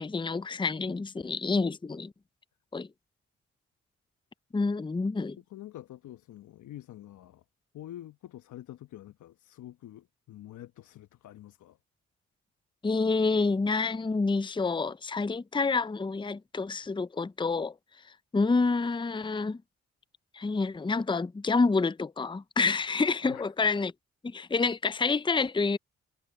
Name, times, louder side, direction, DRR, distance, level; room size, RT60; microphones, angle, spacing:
voice 1, 0.0-2.1 2.7-2.9 4.5-5.4 12.8-17.7 18.3-19.6 20.3-23.9 24.2-25.8, left 4 dB, 15° left, 0.7 m, -28 dB
voice 2, 5.4-7.4 7.7-11.8 23.2-23.4, left 13 dB, 70° left, 1.2 m, -47 dB
hypercardioid pair, 45°, 31 cm